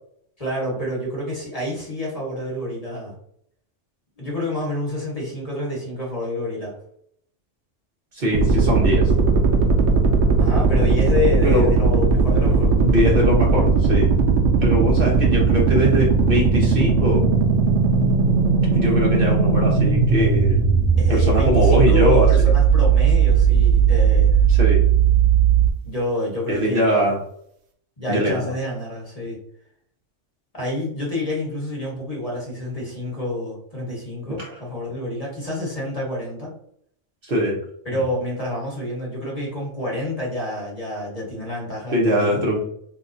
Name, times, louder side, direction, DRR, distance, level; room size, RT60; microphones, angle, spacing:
voice 1, 0.4-3.1 4.2-6.7 10.4-12.8 21.0-24.4 25.8-27.1 28.0-29.4 30.5-36.5 37.8-42.4, left 1 dB, 30° left, -4 dB, 1.3 m, -28 dB
voice 2, 8.1-9.1 11.4-11.7 12.7-14.1 14.6-17.3 18.7-20.6 21.1-22.3 24.5-24.8 26.5-27.2 28.1-28.5 34.4-34.5 37.2-37.6 37.9-38.0 41.9-42.6, equal, 50° right, -3 dB, 1.1 m, -21 dB
sound 1, 8.3-25.7, right 5 dB, 80° right, 1.0 m, -17 dB
3.6 x 2.8 x 2.6 m, 0.67 s
omnidirectional pair, 1.3 m